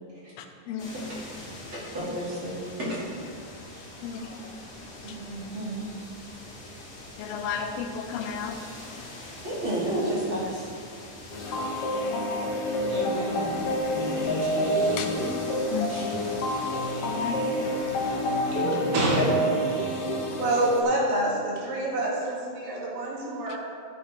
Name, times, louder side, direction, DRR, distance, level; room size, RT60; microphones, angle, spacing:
voice 1, 0.4-0.9 4.0-4.5 5.1-5.2 7.2-8.6 11.5-12.3 15.0-15.1 15.7-16.5 17.2-18.2 19.7-19.8 20.3-20.4, left 6 dB, 90° left, 5 dB, 2.7 m, -35 dB
sound 1, 0.8-18.6, left 2 dB, 35° left, 1.8 m, -42 dB
voice 2, 0.9-3.1 3.7-3.8 5.0-6.1 9.4-10.7 12.9-13.5 13.9-15.0 15.9-16.0 18.5-18.8, right 1 dB, 35° right, -7 dB, 2.6 m, -33 dB
sound 2, 11.3-20.8, equal, 55° left, 1.8 m, -28 dB
voice 3, 18.5-19.8 20.4-23.6, right 1 dB, 70° right, -4 dB, 3.2 m, -27 dB
13.0 x 7.5 x 3.5 m, 2.1 s
omnidirectional pair, 4.4 m